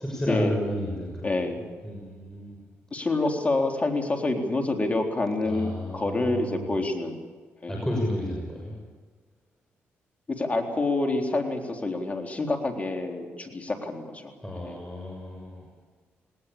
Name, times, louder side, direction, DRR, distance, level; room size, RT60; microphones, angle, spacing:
voice 1, 0.0-1.3 1.8-2.6 5.4-6.7 7.7-8.7 14.4-15.7, equal, 10° left, -1 dB, 6.1 m, -32 dB
voice 2, 1.2-1.7 2.9-7.2 7.6-7.7 10.3-14.3 14.7-14.8, left 2 dB, 30° left, 3 dB, 3.8 m, -27 dB
19.5 x 19.0 x 8.7 m, 1.4 s
cardioid pair, 70°, 5 cm